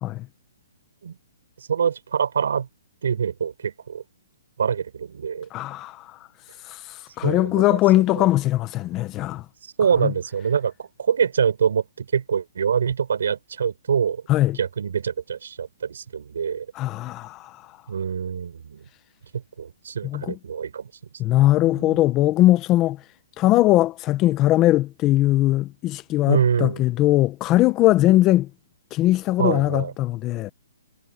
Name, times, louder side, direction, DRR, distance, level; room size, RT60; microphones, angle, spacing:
voice 1, 1.6-2.7 3.0-4.0 4.6-5.5 7.2-7.6 8.2-8.3 9.6-14.2 14.6-16.7 17.9-18.9 19.3-20.9 21.6-22.0 26.3-26.8 29.4-29.9, right 7 dB, 75° right, 5.7 m, -25 dB
voice 2, 5.5-6.2 6.6-9.4 10.0-10.1 14.3-14.6 16.7-17.6 20.0-20.4 21.2-23.0 23.4-28.5 28.9-30.5, left 15 dB, 20° left, 1.0 m, -20 dB
hypercardioid pair, 160°, 0 cm